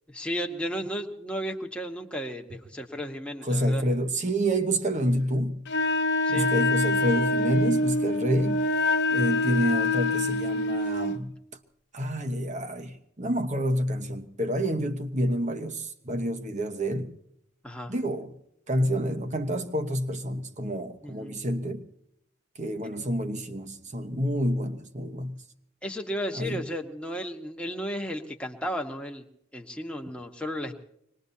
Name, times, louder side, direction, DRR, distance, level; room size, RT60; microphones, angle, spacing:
voice 1, 0.1-3.8 6.2-6.5 9.1-9.4 17.6-17.9 21.0-21.4 25.8-29.2 29.5-30.7, equal, 5° left, 1.2 m, -34 dB
voice 2, 3.4-5.7 6.3-8.7 9.1-11.4 11.9-17.1 17.9-18.3 18.7-21.8 22.6-25.4 26.3-26.6, equal, 35° right, 1.1 m, -28 dB
Wind instrument woodwind instrument, 5.7-11.2, left 2 dB, 55° left, 0.8 m, -25 dB
25.0 x 20.5 x 2.8 m
head